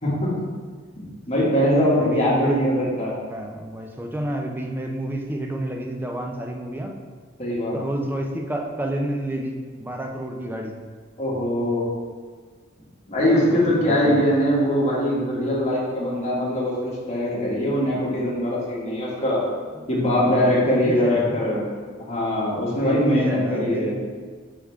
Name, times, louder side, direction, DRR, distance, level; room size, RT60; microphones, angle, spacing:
voice 1, 0.0-0.3 1.0-3.2 7.4-7.7 11.2-11.8 13.1-19.4 19.9-21.7 22.0-23.9, equal, 35° left, -7 dB, 1.8 m, -22 dB
voice 2, 2.0-2.6 2.9-6.9 7.7-10.8 13.2-14.3 19.7-21.5 22.7-23.9, right 1 dB, 10° right, 2 dB, 0.5 m, -30 dB
5.6 x 4.9 x 3.6 m, 1.5 s
head